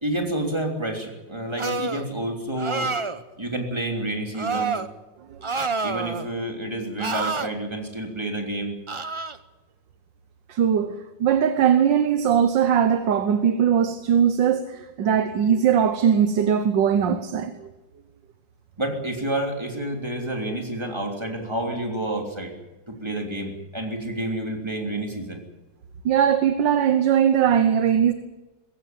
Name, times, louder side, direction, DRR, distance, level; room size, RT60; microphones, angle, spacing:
voice 1, 0.0-2.9 3.4-4.8 5.8-8.7 18.8-22.5 22.9-25.4, right 1 dB, 15° right, 3.2 m, -29 dB
sound 1, 1.6-2.1 2.6-3.2 4.3-4.9 5.4-6.3 7.0-7.5 8.9-9.4, right 3 dB, 45° right, 0.3 m, -28 dB
voice 2, 10.5-17.7 26.1-28.1, right 8 dB, 80° right, 1.7 m, -20 dB
21.5 x 16.0 x 9.2 m
omnidirectional pair, 2.0 m